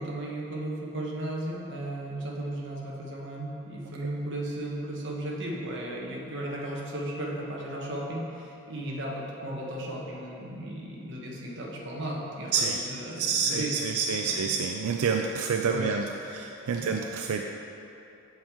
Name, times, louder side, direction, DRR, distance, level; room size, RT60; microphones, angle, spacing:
voice 1, 0.0-14.5 15.7-16.0 16.7-17.0, right 1 dB, 55° right, -2 dB, 1.2 m, -35 dB
voice 2, 13.2-17.4, right 5 dB, 90° right, 2 dB, 0.4 m, -28 dB
7.6 x 7.1 x 3.6 m, 2.8 s
head